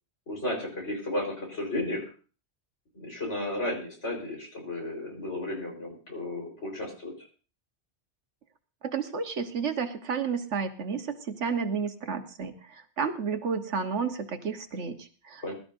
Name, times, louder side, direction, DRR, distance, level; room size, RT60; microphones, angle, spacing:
voice 1, 0.3-2.0 2.9-7.3 15.4-15.5, left 1 dB, 85° left, 0 dB, 4.7 m, -33 dB
voice 2, 8.8-15.5, right 5 dB, 85° right, 7 dB, 1.5 m, -31 dB
21.0 x 12.5 x 2.6 m, 0.37 s
omnidirectional pair, 1.2 m